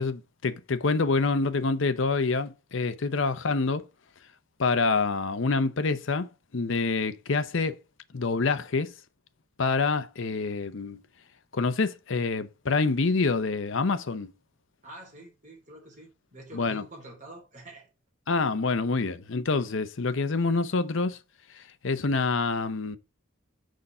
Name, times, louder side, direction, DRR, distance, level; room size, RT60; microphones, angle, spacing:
voice 1, 0.0-3.9 4.6-7.8 8.1-8.9 9.6-11.0 11.5-14.3 16.5-16.8 18.3-21.2 21.6-23.0, left 4 dB, 60° left, 0.7 m, -27 dB
voice 2, 14.8-17.9, right 1 dB, 35° right, 3.5 m, -47 dB
6.5 x 5.5 x 4.8 m
head